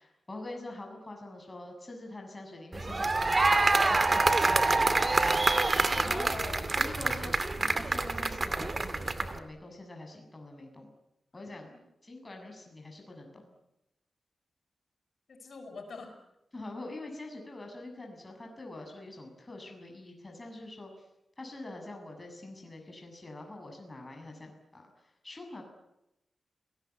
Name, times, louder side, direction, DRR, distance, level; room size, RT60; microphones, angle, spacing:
voice 1, 0.0-5.8 6.0-6.3 6.7-10.9 11.3-11.7 12.0-13.5 16.5-21.1 21.4-25.6, left 2 dB, 25° left, 2 dB, 7.1 m, -45 dB
sound 1, 2.7-9.4, right 3 dB, 35° right, 2.3 m, -26 dB
voice 2, 5.9-6.8 11.5-11.8 15.3-16.1, left 4 dB, 70° left, 6 dB, 8.0 m, -43 dB
29.5 x 19.0 x 9.5 m, 0.88 s
wide cardioid pair, 100°, 0 cm